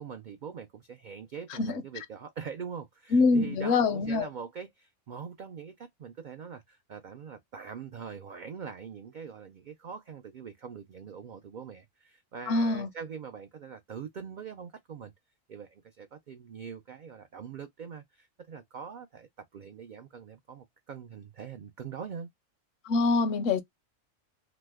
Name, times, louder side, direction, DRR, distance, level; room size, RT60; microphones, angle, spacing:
voice 1, 0.0-15.1 15.5-19.3 19.5-22.3, right 6 dB, 85° right, 0.4 m, -43 dB
voice 2, 1.5-1.8 3.1-4.2 12.5-12.9 22.8-23.6, left 3 dB, 75° left, 1.0 m, -25 dB
2.9 x 2.1 x 3.3 m
omnidirectional pair, 1.4 m